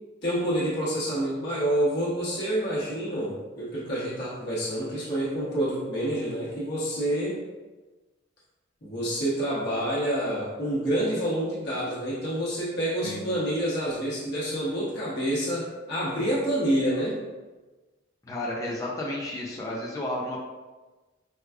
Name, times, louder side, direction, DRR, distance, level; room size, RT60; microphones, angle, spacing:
voice 1, 0.2-7.4 8.8-17.2, right 1 dB, 55° left, -8 dB, 1.1 m, -28 dB
voice 2, 13.0-13.4 18.2-20.4, left 1 dB, 15° left, -3 dB, 0.4 m, -32 dB
4.6 x 2.3 x 2.3 m, 1.2 s
head